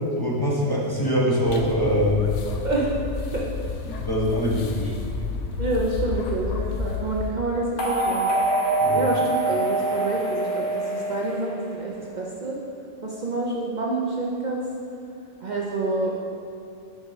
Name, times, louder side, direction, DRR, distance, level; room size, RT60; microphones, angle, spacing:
voice 1, 0.1-2.3 3.9-4.9 8.8-9.0, equal, 20° left, -5 dB, 0.9 m, -23 dB
sound 1, 1.5-7.3, left 5 dB, 85° left, 1.0 m, -31 dB
voice 2, 2.6-3.0 3.3-3.7 5.6-8.3 8.9-12.6 13.0-14.7 15.4-16.1, right 2 dB, 45° right, -3 dB, 0.7 m, -27 dB
sound 2, 7.8-12.0, right 2 dB, 50° left, 1.1 m, -25 dB
6.4 x 5.0 x 5.1 m, 2.6 s
omnidirectional pair, 1.2 m